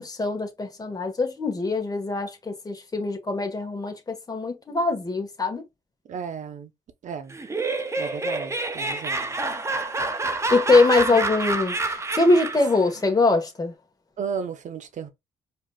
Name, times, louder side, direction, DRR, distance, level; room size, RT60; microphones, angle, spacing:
voice 1, 0.0-5.6 10.5-13.7, left 3 dB, 25° left, 1.5 m, -23 dB
voice 2, 6.1-6.7 7.0-7.4 8.0-9.3 13.0-13.1 14.2-15.1, right 6 dB, 60° right, 0.9 m, -34 dB
Laughter, 7.3-12.8, right 3 dB, 20° right, 0.8 m, -28 dB
4.9 x 2.8 x 2.4 m
cardioid pair, 75°, 14 cm